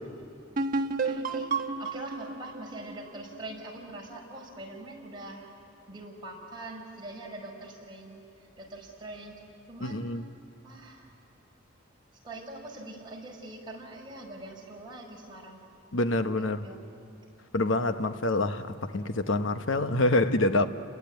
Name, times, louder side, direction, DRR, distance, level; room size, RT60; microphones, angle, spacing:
sound 1, 0.6-4.1, right 3 dB, 45° right, 1.2 m, -32 dB
voice 1, 1.0-1.5 1.8-5.5 5.9-10.1 10.6-11.1 12.2-15.6 16.4-16.9, right 2 dB, 25° right, 5.2 m, -43 dB
voice 2, 9.8-10.3 15.9-16.7 17.5-20.7, left 2 dB, 70° left, 1.1 m, -26 dB
30.0 x 21.0 x 9.4 m
head